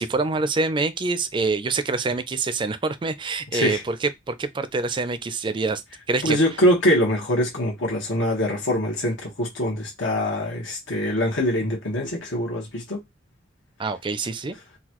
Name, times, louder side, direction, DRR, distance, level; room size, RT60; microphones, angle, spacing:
voice 1, 0.0-5.8 6.1-6.4 13.8-14.6, right 3 dB, 25° right, 0.4 m, -25 dB
voice 2, 6.2-13.0, equal, 85° left, 1.2 m, -23 dB
3.9 x 2.3 x 2.9 m
head